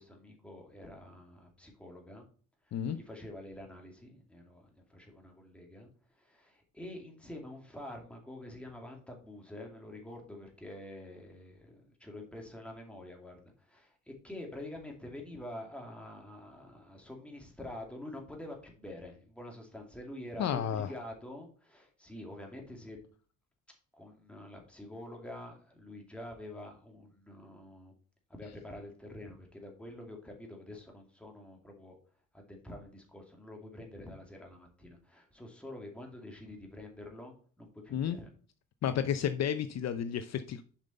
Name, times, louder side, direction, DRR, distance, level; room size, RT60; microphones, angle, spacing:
voice 1, 0.0-2.2 2.6-23.0 24.0-27.9 28.3-32.0 32.3-38.3, left 1 dB, 5° left, 2.4 m, -47 dB
voice 2, 20.4-20.9 37.9-38.2 38.8-40.6, left 9 dB, 55° left, 0.6 m, -32 dB
7.3 x 5.4 x 4.2 m
cardioid pair, 105°, 32 cm